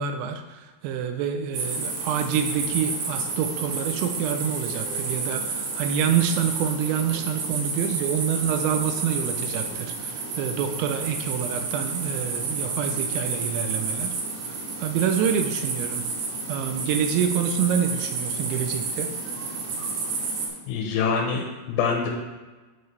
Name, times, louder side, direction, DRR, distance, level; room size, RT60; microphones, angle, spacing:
voice 1, 0.0-14.2 14.4-16.1 16.5-19.1, right 8 dB, 90° right, 5 dB, 2.6 m, -27 dB
sound 1, 1.5-20.5, right 4 dB, 65° right, 3.7 m, -30 dB
voice 2, 20.7-22.1, left 5 dB, 85° left, 0 dB, 3.6 m, -25 dB
8.6 x 6.7 x 3.3 m, 1.2 s
omnidirectional pair, 5.9 m